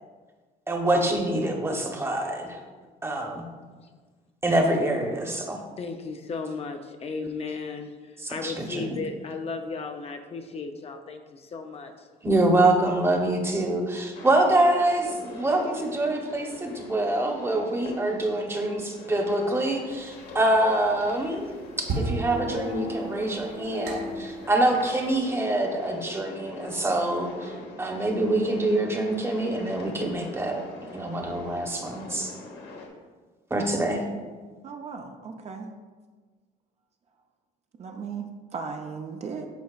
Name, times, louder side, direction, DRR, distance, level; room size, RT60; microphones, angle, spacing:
voice 1, 0.7-2.6 3.0-3.4 4.4-5.6 8.2-9.0 12.2-30.6 30.9-32.3 33.5-34.0, right 1 dB, 15° right, 2 dB, 1.0 m, -25 dB
voice 2, 5.8-12.1, left 4 dB, 40° left, 5 dB, 0.5 m, -35 dB
sound 1, 14.1-32.9, left 2 dB, 80° left, 1.1 m, -42 dB
sound 2, 19.9-25.2, right 1 dB, 80° right, 1.4 m, -34 dB
voice 3, 34.6-35.7 37.8-39.5, right 5 dB, 40° right, 4 dB, 0.6 m, -36 dB
10.5 x 4.2 x 2.4 m, 1.4 s
cardioid pair, 110°, 17 cm